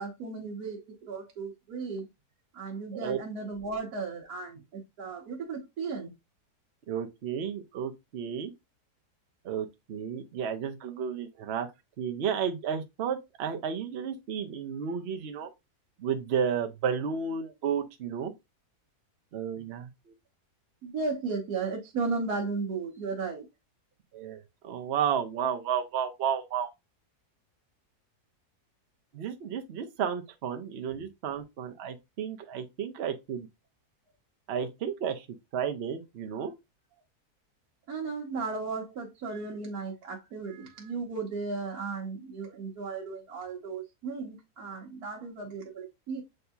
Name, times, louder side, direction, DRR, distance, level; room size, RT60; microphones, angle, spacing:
voice 1, 0.0-2.1 2.5-6.1 20.8-23.5 37.9-46.2, right 4 dB, 75° right, 1.4 m, -35 dB
voice 2, 6.9-8.5 9.4-11.7 12.0-15.5 16.0-18.3 19.3-20.1 24.1-26.7 29.1-33.5 34.5-35.3 35.5-36.5, right 7 dB, 55° right, 0.8 m, -32 dB
7.8 x 2.7 x 2.3 m
omnidirectional pair, 1.7 m